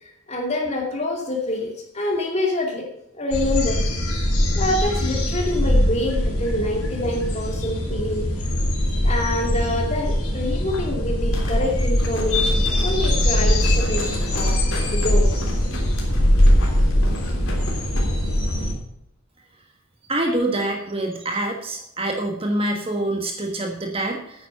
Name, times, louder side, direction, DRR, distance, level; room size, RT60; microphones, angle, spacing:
voice 1, 0.0-2.9 3.1-3.8 4.6-8.3 9.0-14.6 14.8-15.3, left 1 dB, 30° left, 1 dB, 2.7 m, -26 dB
sound 1, 3.3-18.7, left 1 dB, 85° left, 4.2 m, -21 dB
sound 2, 11.3-18.1 18.4-18.5, left 2 dB, 65° left, 3.4 m, -36 dB
voice 2, 20.1-24.5, right 1 dB, 25° right, 2 dB, 1.4 m, -25 dB
9.5 x 9.3 x 6.6 m, 0.78 s
head